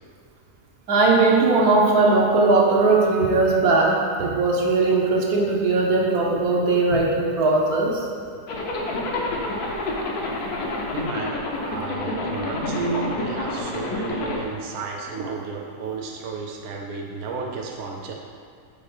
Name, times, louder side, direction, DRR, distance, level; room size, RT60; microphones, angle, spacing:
voice 1, 0.9-8.0 15.2-15.3, right 3 dB, 80° right, -1 dB, 1.4 m, -19 dB
Zipper (clothing), 8.5-14.4, left 2 dB, 80° left, 1.4 m, -28 dB
voice 2, 10.8-11.4 11.7-18.1, right 4 dB, 55° right, 1 dB, 0.9 m, -32 dB
5.6 x 4.1 x 5.4 m, 2.3 s
omnidirectional pair, 1.6 m